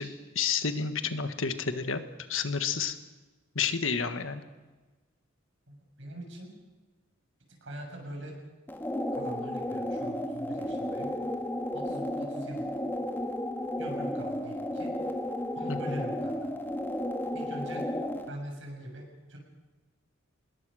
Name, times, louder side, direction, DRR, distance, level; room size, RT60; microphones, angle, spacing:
voice 1, 0.0-2.0 2.3-3.0 3.5-4.4 15.7-16.0, left 6 dB, 70° left, 9 dB, 1.5 m, -30 dB
voice 2, 5.7-6.5 7.6-8.3 9.1-11.1 11.7-12.7 13.8-14.9 15.5-16.4 17.3-17.8 18.3-19.0 19.3-19.4, right 1 dB, 65° right, 2 dB, 6.7 m, -42 dB
sound 1, 8.7-18.3, left 1 dB, 10° left, 1.7 m, -33 dB
25.0 x 20.5 x 6.4 m, 1.3 s
head